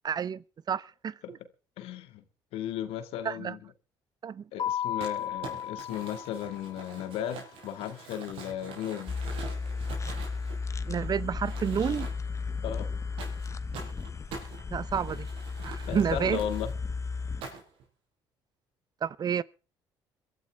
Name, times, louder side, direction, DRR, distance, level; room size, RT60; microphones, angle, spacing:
voice 1, 0.0-1.4 3.2-3.6 4.2-4.4 10.9-12.1 14.7-15.3 15.6-16.4 19.0-19.4, right 7 dB, 45° right, 0.6 m, -30 dB
voice 2, 1.8-2.2 2.5-3.6 4.5-9.2 12.6-12.9 15.9-16.7, left 10 dB, 80° left, 1.9 m, -35 dB
Keyboard (musical), 4.6-7.2, left 10 dB, 50° left, 3.0 m, -35 dB
Crumpling crinkling, 5.0-11.0 11.4-12.4 13.2-16.7 17.4-17.8, right 4 dB, 75° right, 6.4 m, -45 dB
sound 1, 9.1-17.4, left 4 dB, 30° left, 1.1 m, -34 dB
23.0 x 13.0 x 3.5 m
supercardioid pair, 70°, 10 cm